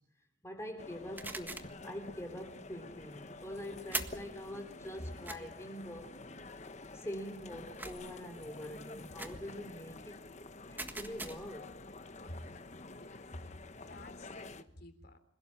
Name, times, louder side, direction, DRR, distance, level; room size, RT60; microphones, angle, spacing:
voice 1, 0.4-6.1 6.9-10.2 10.7-11.8, equal, 15° left, 5 dB, 3.3 m, -44 dB
sound 1, 0.8-14.6, left 2 dB, 35° left, 1.2 m, -49 dB
sound 2, 1.2-1.8 3.9-4.3 5.2-5.4 7.8-8.2 9.2-9.4 10.8-11.6, right 3 dB, 10° right, 1.6 m, -41 dB
voice 2, 12.3-15.2, left 1 dB, 55° left, 9 dB, 3.6 m, -51 dB
26.5 x 17.5 x 8.7 m, 0.65 s
head